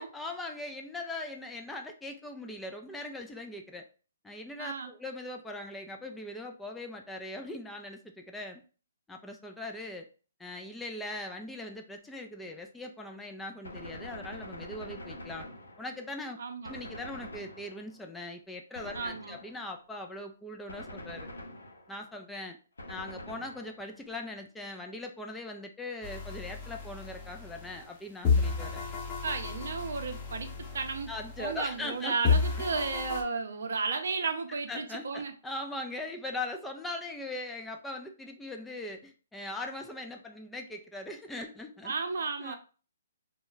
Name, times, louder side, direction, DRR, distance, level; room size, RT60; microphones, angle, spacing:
voice 1, 0.0-3.9 4.2-8.6 9.1-10.1 10.4-15.5 15.8-16.4 16.6-21.3 21.9-22.6 22.9-28.8 31.1-32.6 34.7-41.9 42.4-42.6, left 2 dB, 5° left, 3 dB, 0.3 m, -40 dB
voice 2, 4.6-4.9 16.4-16.8 18.9-19.4 29.2-31.1 31.4-35.3 41.8-42.6, right 4 dB, 70° right, 6 dB, 0.5 m, -33 dB
Gunshot gunfire, 13.6-16.1 16.6-18.1 18.7-19.8 20.7-22.1 22.8-24.0, left 1 dB, 90° left, 0.7 m, -45 dB
sound 1, 26.0-27.9 28.2-31.9 32.2-33.2, left 5 dB, 25° left, 0.7 m, -32 dB
2.3 x 2.1 x 3.7 m, 0.37 s
hypercardioid pair, 140°, 0 cm